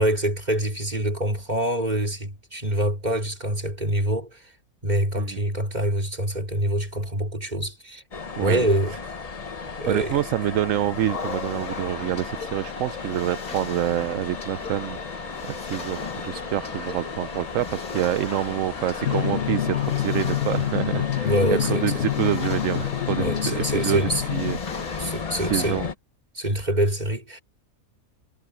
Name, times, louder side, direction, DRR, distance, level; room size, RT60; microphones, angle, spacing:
voice 1, 0.0-4.4 4.8-8.0 8.4-8.9 9.8-10.2 21.2-21.9 23.2-24.2 25.0-25.8 26.3-27.4, right 1 dB, 30° right, 4.3 m, -25 dB
sound 1, 8.1-25.9, left 5 dB, 30° left, 0.8 m, -35 dB
voice 2, 8.4-8.7 9.9-24.6 25.1-25.9, right 12 dB, 70° right, 1.0 m, -27 dB
sound 2, 10.6-25.8, left 5 dB, 85° left, 2.6 m, -40 dB
Drum, 19.0-24.6, left 11 dB, 55° left, 1.5 m, -27 dB
omnidirectional pair, 1.5 m